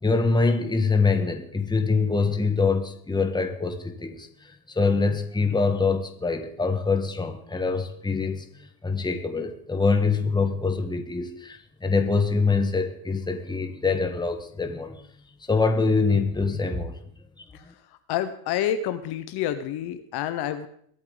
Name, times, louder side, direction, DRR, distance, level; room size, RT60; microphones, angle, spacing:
voice 1, 0.0-15.1 15.5-17.0 17.6-17.7, left 4 dB, 10° left, 6 dB, 1.6 m, -24 dB
voice 2, 18.1-20.7, left 10 dB, 55° left, 10 dB, 1.2 m, -28 dB
22.5 x 8.8 x 4.0 m, 0.64 s
supercardioid pair, 105°, 46 cm